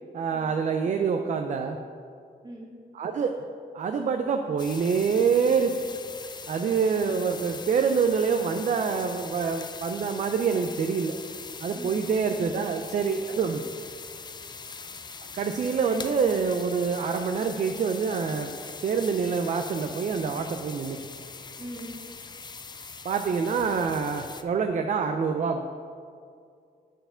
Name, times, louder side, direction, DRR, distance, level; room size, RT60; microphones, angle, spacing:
voice 1, 0.1-1.8 2.9-3.4 3.7-5.8 6.5-11.2 11.6-13.6 15.3-18.5 18.8-21.0 23.0-25.7, right 5 dB, 50° right, 5 dB, 0.5 m, -26 dB
sound 1, 4.6-24.4, left 5 dB, 25° left, 0.4 m, -41 dB
voice 2, 11.7-12.1 21.6-22.0, right 1 dB, 30° right, -3 dB, 1.9 m, -42 dB
9.0 x 4.6 x 5.6 m, 2.3 s
wide cardioid pair, 115°, 16 cm